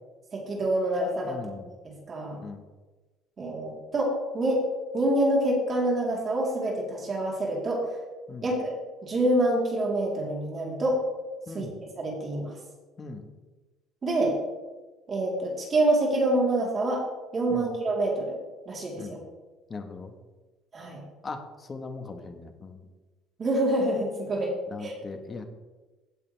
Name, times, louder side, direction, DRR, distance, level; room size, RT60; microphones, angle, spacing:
voice 1, 0.3-1.4 1.8-2.4 3.4-4.6 4.9-8.0 8.4-8.8 9.0-11.0 11.5-11.7 12.0-12.5 14.0-14.4 15.1-17.0 17.3-18.4 18.7-19.2 20.7-21.0 23.4-24.5 24.8-24.9, right 1 dB, 35° right, -2 dB, 3.7 m, -26 dB
voice 2, 1.2-1.7 2.4-2.6 8.3-8.5 11.5-11.7 13.0-13.3 17.5-17.7 19.0-19.2 19.7-20.1 21.2-22.8 24.7-25.4, left 4 dB, 30° left, 6 dB, 1.5 m, -39 dB
16.5 x 8.5 x 3.4 m, 1.2 s
cardioid pair, 105°, 0 cm